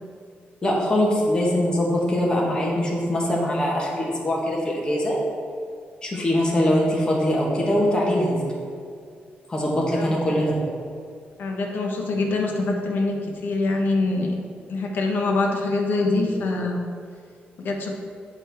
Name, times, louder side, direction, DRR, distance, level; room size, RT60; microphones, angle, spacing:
voice 1, 0.6-5.2 6.0-8.4 9.5-10.6, left 1 dB, 25° left, -3 dB, 1.2 m, -22 dB
voice 2, 11.4-13.2 13.4-14.3 14.7-16.8 17.6-17.9, left 2 dB, 60° left, 1 dB, 0.9 m, -24 dB
8.0 x 4.5 x 3.4 m, 2.2 s
wide cardioid pair, 140°, 4 cm